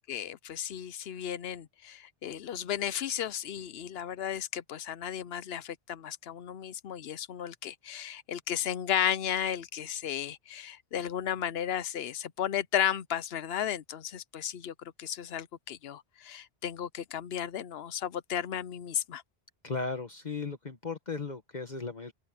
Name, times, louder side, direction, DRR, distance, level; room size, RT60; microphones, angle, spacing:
voice 1, 0.1-19.2, left 9 dB, 75° left, 0.9 m, -34 dB
voice 2, 19.6-22.1, left 4 dB, 45° left, 1.4 m, -36 dB
open air
omnidirectional pair, 1.0 m